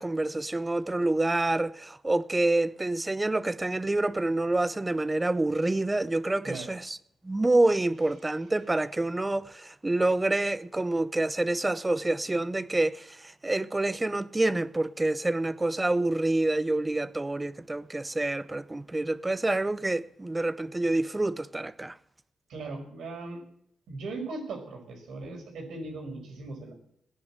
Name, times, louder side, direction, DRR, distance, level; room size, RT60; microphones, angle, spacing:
voice 1, 0.0-7.0 7.2-22.0, right 2 dB, 15° right, 0.7 m, -27 dB
voice 2, 6.4-6.7 22.5-23.4 23.9-26.7, right 3 dB, 80° right, 5.2 m, -38 dB
17.0 x 10.5 x 7.6 m
cardioid pair, 90°, 0 cm